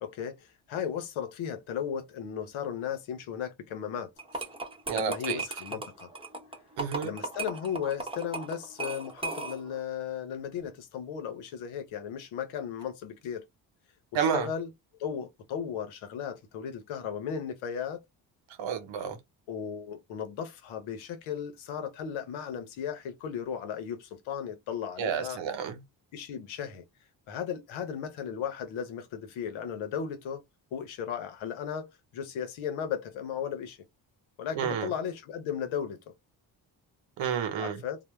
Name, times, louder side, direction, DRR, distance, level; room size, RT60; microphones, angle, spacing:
voice 1, 0.0-4.1 4.9-6.1 7.0-13.4 14.3-14.7 15.0-18.0 19.5-25.4 26.1-26.8 27.3-30.4 30.7-33.8 34.4-36.1 37.6-38.0, left 8 dB, 90° left, 0.7 m, -35 dB
sound 1, 4.2-9.8, right 3 dB, 10° right, 0.7 m, -37 dB
voice 2, 4.9-5.4 6.8-7.1 14.1-14.5 18.6-19.2 25.0-25.8 34.5-34.9 37.2-37.8, right 7 dB, 75° right, 0.9 m, -30 dB
2.1 x 2.1 x 3.0 m
supercardioid pair, 60°, 46 cm